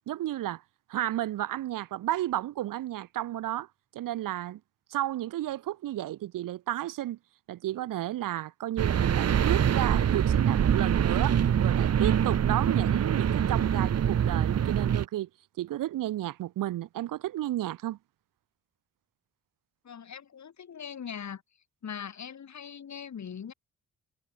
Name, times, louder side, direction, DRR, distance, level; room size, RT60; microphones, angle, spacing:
voice 1, 0.1-0.6 0.9-3.7 3.9-4.6 4.9-7.2 7.5-15.3 15.6-18.0, right 14 dB, 85° right, 1.5 m, -32 dB
sound 1, 8.8-15.0, right 9 dB, 50° right, 1.1 m, -24 dB
voice 2, 19.8-21.4 21.8-23.5, left 7 dB, 60° left, 7.0 m, -41 dB
cardioid pair, 70°, 32 cm